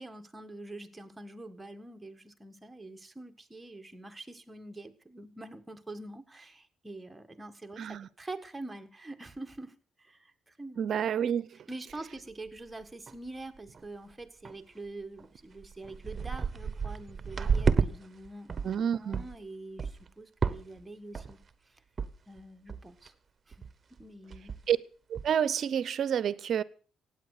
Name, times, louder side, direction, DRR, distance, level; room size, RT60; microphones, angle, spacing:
voice 1, 0.0-10.8 11.5-18.5 18.9-21.4 21.7-21.8 22.3-23.1 23.5-23.6 24.0-24.6, right 2 dB, 15° right, 1.6 m, -45 dB
voice 2, 7.8-8.1 10.8-11.5 18.6-19.2 24.7-24.8 25.1-26.6, right 8 dB, 60° right, 0.6 m, -29 dB
sound 1, 11.9-12.0 12.5-12.6 12.8-13.3 13.6-13.8 14.4-14.5 15.2-15.3 15.6-17.9 18.2-18.8 19.1-19.3 19.8-20.1 20.4-20.8 21.1-21.5 22.0-22.1 22.4-22.5 22.7-23.1 23.5-23.7 24.0-24.1 24.3-24.7 25.1-25.3, right 5 dB, 35° right, 1.1 m, -31 dB
16.0 x 9.3 x 6.5 m
cardioid pair, 90°, 0 cm